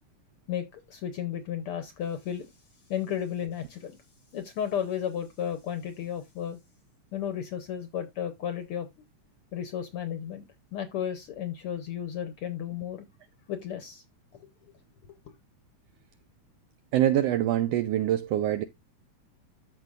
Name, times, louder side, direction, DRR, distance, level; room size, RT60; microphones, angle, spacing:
voice 1, 0.5-2.5 2.9-4.0 4.3-6.6 7.1-8.9 9.5-10.4 10.7-13.0 13.5-14.0 14.4-14.5, left 9 dB, 70° left, 1.4 m, -33 dB
voice 2, 16.9-18.6, right 12 dB, 80° right, 1.4 m, -24 dB
13.5 x 4.7 x 2.4 m
omnidirectional pair, 3.3 m